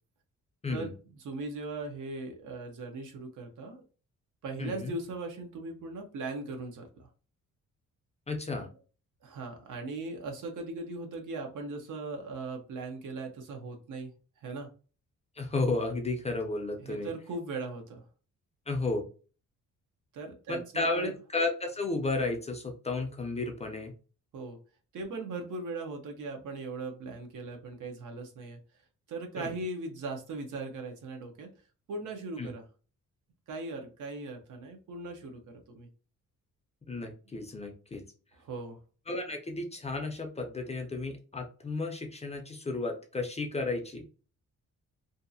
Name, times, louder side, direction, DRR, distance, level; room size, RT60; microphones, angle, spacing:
voice 1, 0.7-3.8 4.4-7.1 9.2-14.1 14.4-14.7 16.8-18.0 20.1-21.1 24.3-24.6 24.9-28.6 29.1-31.5 31.9-32.7 33.5-35.4 35.7-35.9 38.3-38.8, right 3 dB, 75° right, 4 dB, 0.8 m, -39 dB
voice 2, 4.6-4.9 8.3-8.7 15.4-17.1 18.7-19.0 20.5-23.9 29.4-29.5 32.4-32.5 36.9-38.0 39.1-44.1, left 3 dB, 20° left, 3 dB, 0.4 m, -33 dB
2.7 x 2.4 x 2.6 m, 0.37 s
wide cardioid pair, 160°, 31 cm